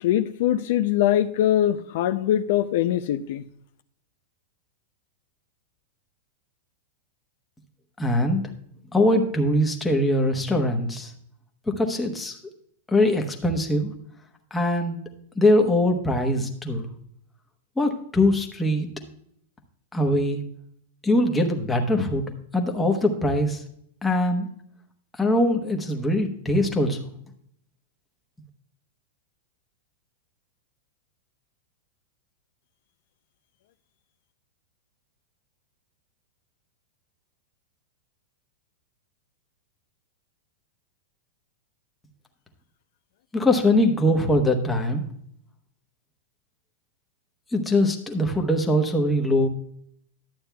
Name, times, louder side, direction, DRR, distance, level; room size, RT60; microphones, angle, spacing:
voice 1, 0.0-3.4, left 12 dB, 55° left, 10 dB, 0.4 m, -22 dB
voice 2, 8.0-8.4 8.9-11.1 11.7-12.4 12.9-13.9 14.5-15.0 15.4-16.9 17.8-18.9 19.9-20.4 21.0-22.2 22.5-23.6 24.0-24.5 25.1-27.1 43.3-45.0 47.5-49.5, left 1 dB, 5° left, 2 dB, 1.0 m, -22 dB
12.0 x 8.6 x 2.3 m, 0.68 s
supercardioid pair, 165°, 0 cm